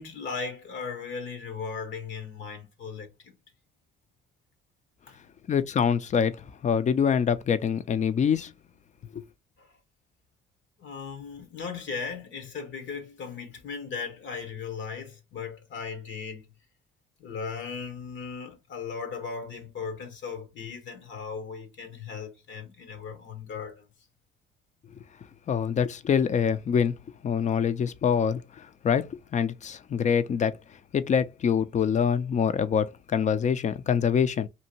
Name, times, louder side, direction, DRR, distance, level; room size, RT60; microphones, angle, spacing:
voice 1, 0.0-3.1 5.1-5.2 9.6-9.8 10.8-16.5 17.2-23.8, left 5 dB, 70° left, 0.8 m, -37 dB
voice 2, 5.5-8.5 9.1-9.2 25.5-27.0 27.2-30.5 30.9-34.5, left 7 dB, 40° left, 0.4 m, -25 dB
2.7 x 2.5 x 2.8 m
cardioid pair, 90°, 20 cm